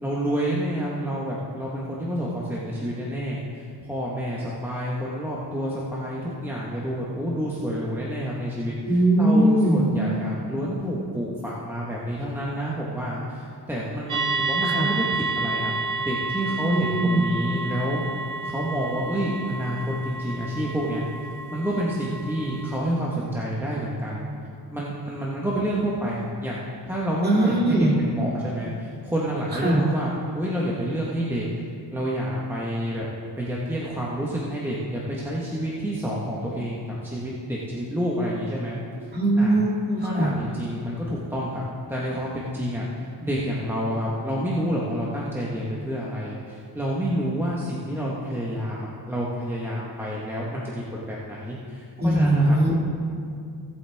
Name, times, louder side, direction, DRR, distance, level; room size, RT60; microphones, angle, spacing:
voice 1, 0.0-18.0 18.4-21.0 21.5-24.3 24.7-31.5 31.9-33.0 33.4-38.8 39.4-39.6 40.0-41.6 41.9-42.9 43.2-52.6, equal, 5° right, -6 dB, 1.4 m, -29 dB
voice 2, 8.9-9.9 14.8-14.9 16.7-17.2 27.2-27.9 29.6-29.8 39.1-40.3 52.0-52.7, right 1 dB, 25° right, -3 dB, 2.5 m, -20 dB
sound 1, 14.1-22.8, right 3 dB, 45° right, 0.9 m, -30 dB
17.0 x 8.2 x 3.6 m, 2.4 s
cardioid pair, 105°, 40 cm